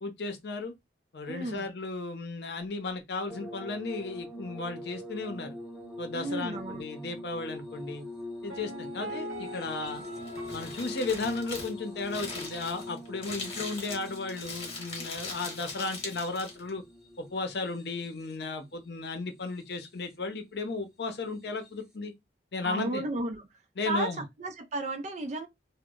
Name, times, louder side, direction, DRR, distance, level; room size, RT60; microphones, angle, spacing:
voice 1, 0.0-0.7 1.1-5.6 6.0-8.0 8.4-10.0 10.5-16.8 17.2-22.1 22.5-23.0 23.8-24.2, left 3 dB, 65° left, 0.6 m, -35 dB
voice 2, 1.3-1.7 6.1-6.9 22.6-23.4 23.8-25.5, right 2 dB, 40° right, 0.4 m, -33 dB
sound 1, 3.3-18.5 19.4-20.1 21.5-21.7, left 1 dB, ahead, 0.7 m, -43 dB
Piano, 8.5-12.2 12.5-12.6, equal, 60° right, 0.9 m, -44 dB
Crumpling crinkling, 9.9-16.7, left 3 dB, 35° left, 1.0 m, -41 dB
2.1 x 2.0 x 3.6 m
head